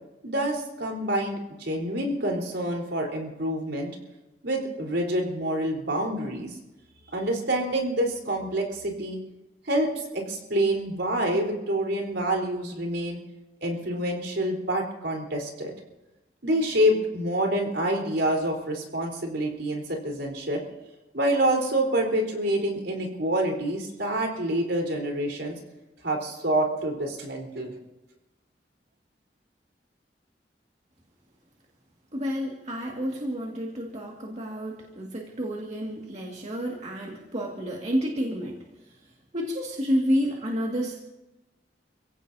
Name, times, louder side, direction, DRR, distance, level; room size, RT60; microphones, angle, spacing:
voice 1, 0.2-3.9 4.4-6.6 7.1-9.2 9.7-13.2 13.6-15.7 16.4-20.6 21.1-25.6 26.0-27.7, right 1 dB, 85° right, 1 dB, 4.1 m, -27 dB
voice 2, 32.1-38.6 39.3-41.0, equal, 40° right, -2 dB, 2.1 m, -30 dB
29.0 x 16.5 x 2.8 m, 1.0 s
head